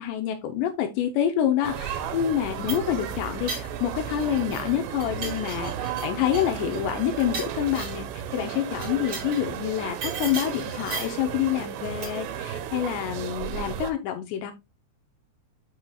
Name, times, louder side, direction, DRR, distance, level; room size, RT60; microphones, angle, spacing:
voice 1, 0.0-14.5, left 10 dB, 90° left, 6 dB, 3.1 m, -27 dB
sound 1, 1.6-13.9, right 9 dB, 85° right, 3.1 m, -34 dB
sound 2, 2.4-4.7 5.0-8.1 8.7-9.5 10.0-11.3 12.0-12.4, right 4 dB, 40° right, 5.3 m, -37 dB
11.0 x 5.1 x 2.3 m, 0.22 s
omnidirectional pair, 4.9 m